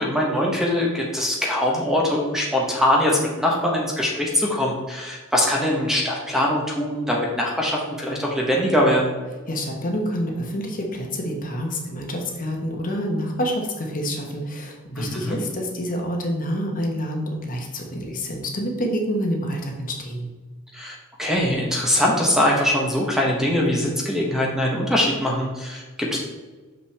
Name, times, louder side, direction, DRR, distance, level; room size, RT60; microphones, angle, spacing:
voice 1, 0.0-9.1 15.0-15.4 20.7-26.2, left 1 dB, ahead, -2 dB, 0.9 m, -22 dB
voice 2, 9.5-20.3, equal, 40° left, 1 dB, 1.1 m, -27 dB
6.7 x 5.6 x 3.3 m, 1.3 s
head